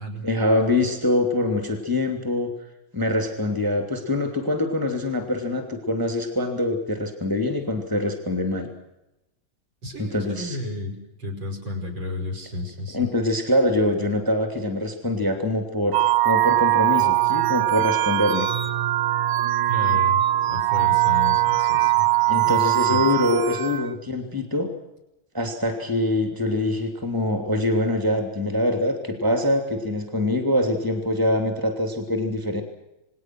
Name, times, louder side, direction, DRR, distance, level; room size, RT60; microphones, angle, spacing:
voice 1, 0.2-2.5 2.9-8.7 10.0-10.6 12.9-18.5 22.3-24.7 25.3-32.6, left 1 dB, 10° right, 5 dB, 2.9 m, -24 dB
voice 2, 9.8-13.1 19.7-20.2 20.5-22.1 22.3-22.6 22.8-23.0, left 2 dB, 65° right, 4 dB, 5.9 m, -32 dB
sound 1, 15.9-23.9, right 15 dB, 90° right, 1.9 m, -21 dB
28.5 x 19.5 x 6.3 m, 0.94 s
omnidirectional pair, 2.4 m